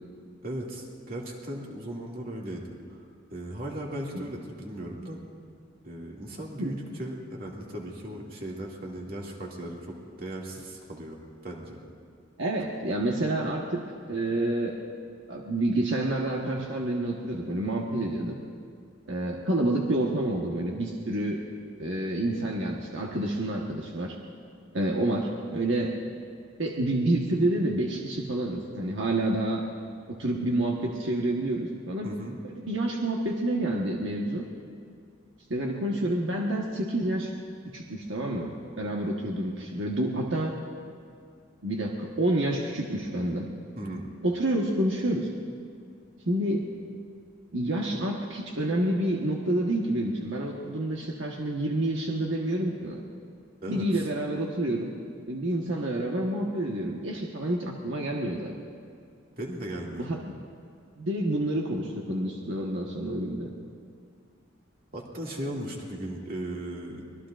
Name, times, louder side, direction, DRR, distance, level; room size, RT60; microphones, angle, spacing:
voice 1, 0.4-3.0 3.3-5.2 5.8-11.2 11.4-11.8 32.0-32.4 43.8-44.1 53.6-54.0 59.4-60.1 64.9-67.0, right 1 dB, 50° right, -2 dB, 2.3 m, -37 dB
voice 2, 6.6-7.0 12.4-13.8 14.1-14.8 15.3-18.4 19.1-21.4 21.8-24.2 24.7-25.9 26.6-29.7 30.1-32.1 32.4-34.4 35.5-37.3 37.7-40.5 41.6-43.5 44.2-45.3 46.2-46.7 47.5-53.0 53.7-54.9 55.3-58.5 60.0-60.3 61.0-63.5, right 1 dB, 80° right, -1 dB, 1.3 m, -28 dB
24.5 x 20.5 x 2.5 m, 2.3 s
head